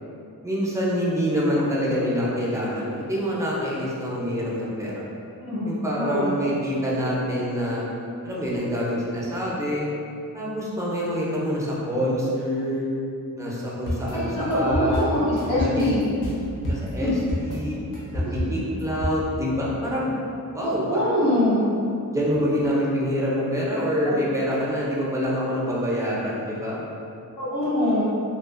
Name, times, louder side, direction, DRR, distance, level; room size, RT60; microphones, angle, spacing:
voice 1, 0.4-5.0 5.7-7.9 8.2-9.8 10.3-12.8 13.4-15.1 15.6-15.9 16.7-17.1 17.4-17.8 18.1-20.1 20.5-21.3 22.1-26.8, equal, 10° right, -6 dB, 0.5 m, -26 dB
voice 2, 5.4-6.3 14.1-16.0 17.0-17.1 18.2-18.5 20.6-21.7 24.0-24.2 27.4-28.0, left 1 dB, 85° left, -10 dB, 1.3 m, -24 dB
sound 1, 13.9-19.1, left 1 dB, 65° left, 0.7 m, -29 dB
2.4 x 2.4 x 2.4 m, 2.6 s
wide cardioid pair, 95°, 35 cm